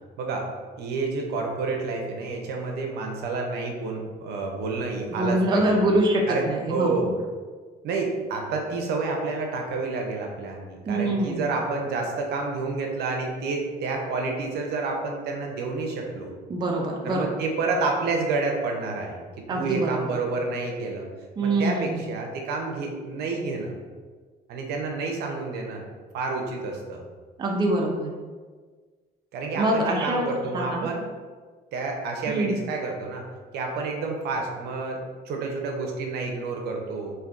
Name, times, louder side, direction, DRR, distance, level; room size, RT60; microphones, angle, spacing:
voice 1, 0.2-5.8 6.3-7.1 7.8-16.3 17.0-21.1 21.4-23.7 24.5-25.8 26.1-27.0 29.3-31.1 31.7-33.2 33.5-37.1, right 3 dB, 75° right, 1 dB, 0.6 m, -29 dB
voice 2, 5.1-7.1 10.9-11.5 16.5-17.3 19.5-20.2 21.4-22.0 27.4-28.1 29.6-30.9 32.3-32.6, right 1 dB, 25° right, 0 dB, 0.4 m, -25 dB
3.3 x 2.5 x 2.4 m, 1.5 s
cardioid pair, 110°, 17 cm